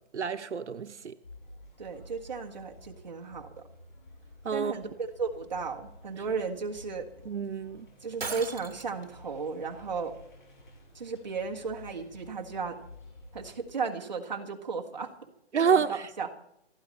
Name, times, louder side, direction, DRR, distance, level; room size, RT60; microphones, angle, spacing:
voice 1, 0.1-1.1 4.4-4.7 7.3-7.9 15.5-16.0, right 6 dB, 90° right, 0.9 m, -28 dB
sound 1, 1.2-13.6, left 1 dB, 45° left, 6.4 m, -52 dB
voice 2, 1.8-3.6 4.5-7.1 8.0-10.1 10.9-12.8 13.3-15.3 15.6-16.3, right 5 dB, 40° right, 1.6 m, -35 dB
Shatter, 8.2-9.1, right 4 dB, 65° right, 2.1 m, -37 dB
29.0 x 9.8 x 4.2 m
hypercardioid pair, 175°, 34 cm